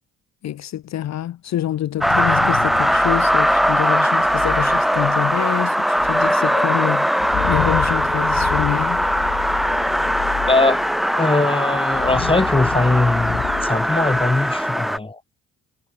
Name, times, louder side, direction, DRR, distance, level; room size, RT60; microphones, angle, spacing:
voice 1, 0.4-7.2 7.5-9.0, left 12 dB, 60° left, 1.1 m, -26 dB
sound 1, 1.9-14.6, left 14 dB, 80° left, 2.9 m, -32 dB
sound 2, 2.0-15.0, equal, ahead, 0.9 m, -20 dB
voice 2, 10.5-10.8 11.2-15.2, left 2 dB, 15° left, 6.3 m, -20 dB
cardioid pair, 90°, 30 cm